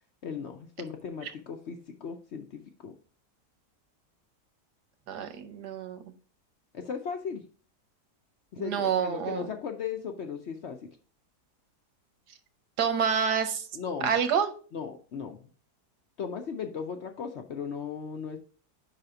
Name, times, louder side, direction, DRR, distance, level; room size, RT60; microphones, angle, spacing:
voice 1, 0.2-2.9 6.7-7.4 8.5-10.9 13.7-14.1 14.7-15.4 16.2-18.4, left 6 dB, 60° left, 5 dB, 0.7 m, -37 dB
voice 2, 5.1-6.0 8.6-9.5 12.8-13.6 14.0-14.5, right 7 dB, 90° right, 9 dB, 1.5 m, -28 dB
5.2 x 4.1 x 5.6 m, 0.41 s
omnidirectional pair, 1.7 m